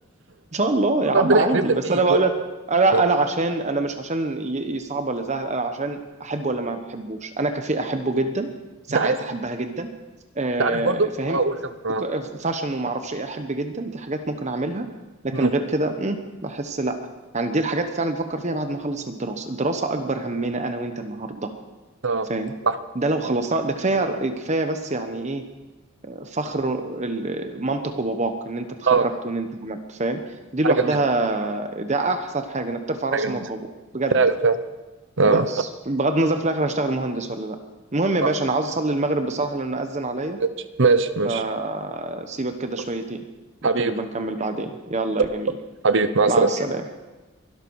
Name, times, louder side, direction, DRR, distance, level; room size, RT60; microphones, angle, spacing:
voice 1, 0.5-2.3 2.7-8.5 8.9-9.9 10.3-11.4 12.0-14.9 15.2-17.0 17.3-21.5 22.3-22.5 22.9-25.5 26.0-30.2 30.5-33.6 33.9-34.2 35.2-37.6 37.9-40.4 41.2-43.3 43.6-45.5 46.3-47.0, right 2 dB, 35° right, 7 dB, 1.1 m, -25 dB
voice 2, 1.1-2.2 2.9-3.0 8.9-9.2 10.6-11.6 11.8-12.0 15.3-15.5 22.0-22.3 22.6-22.8 28.9-29.1 30.6-31.0 33.1-33.4 34.1-34.6 35.2-35.6 38.2-38.3 40.4-40.5 40.8-41.4 43.6-43.9 45.8-46.5, right 3 dB, 60° right, 12 dB, 0.9 m, -20 dB
23.5 x 12.5 x 4.8 m, 1.1 s
head